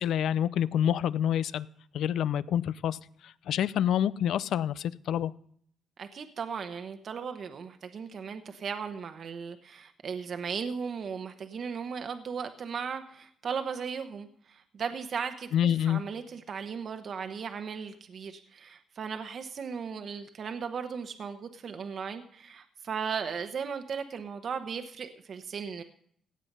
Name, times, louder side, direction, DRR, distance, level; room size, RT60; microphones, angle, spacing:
voice 1, 0.0-1.7 1.9-5.3 15.5-16.0, left 10 dB, 75° left, 0.5 m, -27 dB
voice 2, 6.0-25.8, right 6 dB, 55° right, 1.0 m, -37 dB
16.5 x 7.5 x 5.4 m
cardioid pair, 90°, 0 cm